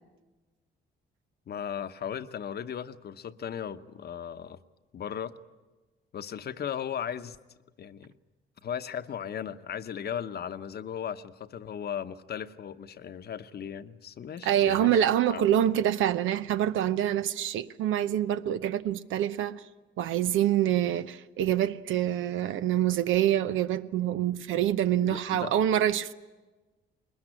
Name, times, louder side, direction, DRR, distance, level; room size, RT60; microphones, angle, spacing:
voice 1, 1.5-4.6 4.9-5.4 6.1-7.4 7.8-8.1 8.6-15.0 15.3-15.4 25.0-25.5, left 8 dB, 55° left, 0.9 m, -36 dB
voice 2, 14.4-19.6 20.0-26.1, right 11 dB, 85° right, 0.8 m, -26 dB
21.0 x 20.0 x 10.0 m
cardioid pair, 90°, 20 cm